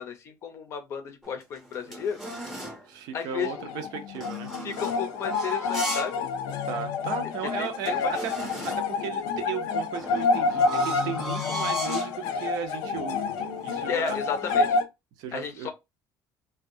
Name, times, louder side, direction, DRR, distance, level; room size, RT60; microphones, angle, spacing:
voice 1, 0.0-2.2 3.1-3.5 4.6-6.2 7.6-8.2 13.9-14.8 15.3-15.7, left 7 dB, 40° left, 0.5 m, -33 dB
sound 1, 1.2-2.9 4.1-6.2 6.6-6.7 7.3-7.4 7.6-9.0 9.9-12.2 12.8-13.1 13.4-14.7, equal, 5° right, 0.7 m, -36 dB
voice 2, 2.9-4.5 6.6-13.3 13.6-14.2 15.2-15.7, right 8 dB, 70° right, 0.5 m, -36 dB
sound 2, 3.3-14.8, left 4 dB, 85° left, 0.5 m, -28 dB
2.5 x 2.2 x 2.6 m
cardioid pair, 175°, 7 cm